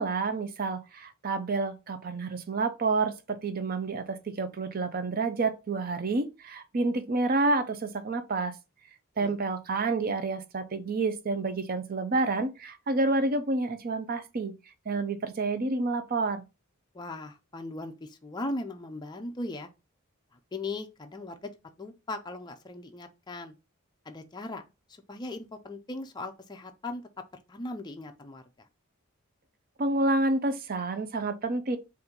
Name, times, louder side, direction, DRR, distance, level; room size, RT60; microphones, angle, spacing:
voice 1, 0.0-8.5 9.2-14.5 14.9-16.4 29.8-31.8, right 3 dB, 40° right, 0.5 m, -29 dB
voice 2, 16.9-19.7 20.5-21.5 21.8-23.5 24.1-24.6 25.1-27.0 27.5-28.4, left 2 dB, 20° left, 0.4 m, -38 dB
4.2 x 2.5 x 3.8 m
head